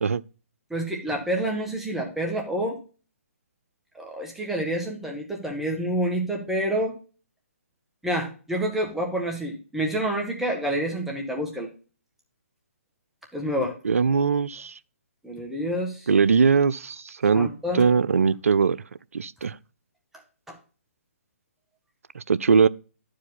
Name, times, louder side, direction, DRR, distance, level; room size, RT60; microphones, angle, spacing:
voice 1, 0.7-2.8 3.9-7.0 8.0-11.7 13.3-13.8 15.2-16.1 17.3-17.8 20.5-20.6, right 1 dB, 5° right, 1.4 m, -28 dB
voice 2, 13.8-14.7 16.1-17.5 17.7-18.8 19.1-19.6 22.1-22.7, right 5 dB, 75° right, 0.5 m, -21 dB
11.5 x 4.8 x 4.1 m
figure-of-eight pair, 135°, 8 cm